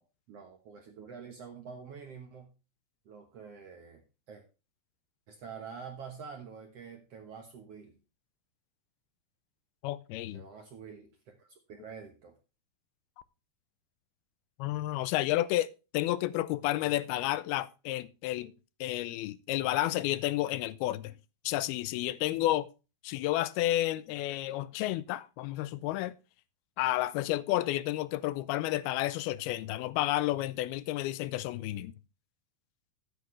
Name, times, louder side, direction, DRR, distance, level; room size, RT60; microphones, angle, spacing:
voice 1, 0.3-2.5 3.0-4.4 5.3-7.9 10.3-12.3, right 6 dB, 65° right, 1.6 m, -47 dB
voice 2, 9.8-10.4 14.6-18.5 18.8-21.2 21.5-22.7 23.0-26.1 26.8-31.9, left 15 dB, 90° left, 2.6 m, -31 dB
13.0 x 8.5 x 3.2 m
omnidirectional pair, 4.3 m